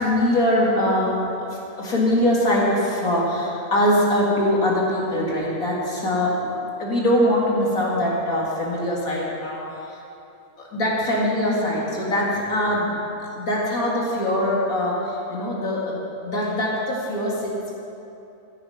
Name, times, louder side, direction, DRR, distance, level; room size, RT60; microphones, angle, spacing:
voice 1, 0.0-10.0 10.6-13.0 13.3-17.7, left 1 dB, 60° left, -4 dB, 2.6 m, -23 dB
15.0 x 8.6 x 5.6 m, 2.7 s
omnidirectional pair, 1.7 m